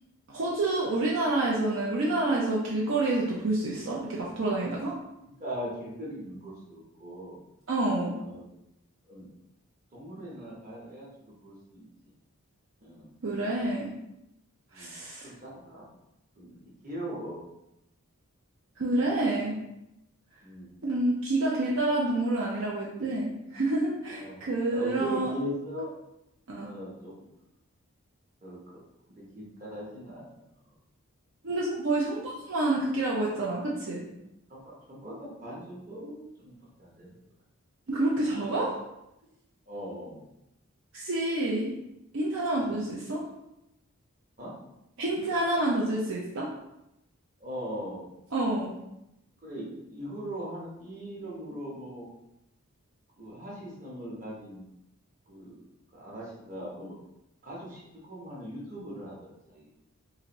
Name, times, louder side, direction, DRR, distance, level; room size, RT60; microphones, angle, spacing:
voice 1, 0.3-4.9 7.7-8.1 13.2-13.9 14.7-15.3 18.8-19.6 20.8-25.3 26.5-26.7 31.4-34.0 37.9-38.7 40.9-41.7 42.1-43.2 45.0-46.5 48.3-48.7, right 2 dB, 60° right, -5 dB, 0.5 m, -28 dB
voice 2, 5.2-7.4 8.2-8.5 9.1-9.3 9.9-11.8 12.8-13.1 14.7-14.9 15.2-15.8 16.4-16.6 16.8-17.4 20.4-20.7 24.1-24.4 24.7-25.9 26.6-27.3 28.4-28.8 29.1-30.3 34.5-37.2 38.3-38.5 39.7-40.2 42.5-42.9 44.4-44.5 47.4-48.1 49.4-52.1 53.2-54.6 55.3-55.6 55.9-57.0 57.4-59.2 59.5-59.7, right 1 dB, 35° right, -5 dB, 1.0 m, -40 dB
3.9 x 2.5 x 3.0 m, 0.86 s
head